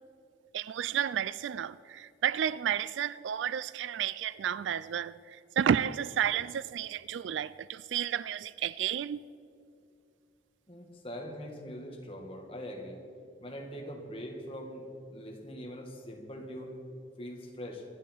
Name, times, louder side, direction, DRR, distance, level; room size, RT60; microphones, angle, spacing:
voice 1, 0.5-9.3, right 9 dB, 75° right, 0.3 m, -31 dB
voice 2, 10.7-13.0 13.4-16.8 17.2-17.8, equal, 30° left, 1.8 m, -42 dB
24.5 x 10.5 x 4.5 m
head